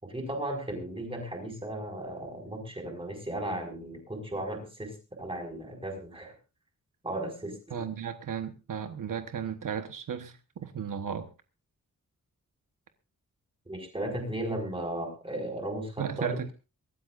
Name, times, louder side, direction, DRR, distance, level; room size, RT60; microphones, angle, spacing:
voice 1, 0.0-6.3 7.0-7.8 13.7-16.4, right 1 dB, 15° right, 5.9 m, -36 dB
voice 2, 7.7-11.3 16.0-16.5, right 8 dB, 80° right, 1.3 m, -35 dB
24.0 x 13.0 x 2.6 m
wide cardioid pair, 155°, 31 cm